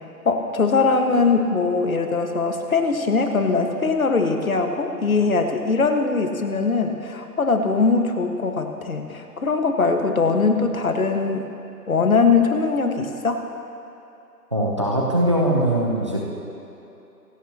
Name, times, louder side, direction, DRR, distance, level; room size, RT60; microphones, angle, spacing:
voice 1, 0.2-11.5 11.9-13.4, left 4 dB, 55° left, 4 dB, 1.7 m, -21 dB
voice 2, 14.5-16.3, right 1 dB, 20° right, -2 dB, 0.9 m, -21 dB
27.0 x 18.0 x 3.0 m, 2.9 s
figure-of-eight pair, 170°, 48 cm